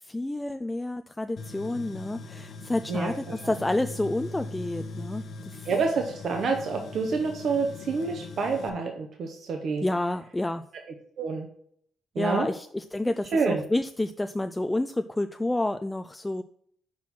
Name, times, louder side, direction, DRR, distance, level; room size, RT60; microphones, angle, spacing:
voice 1, 0.1-5.7 9.8-10.6 12.2-16.4, left 1 dB, 10° left, 9 dB, 0.3 m, -29 dB
Tools, 1.4-8.7, left 3 dB, 60° left, 1.0 m, -41 dB
voice 2, 2.9-3.5 5.7-9.8 11.2-11.5 12.2-12.5 13.3-13.6, right 4 dB, 60° right, 3 dB, 0.9 m, -28 dB
6.0 x 4.5 x 5.9 m, 0.65 s
cardioid pair, 90°, 0 cm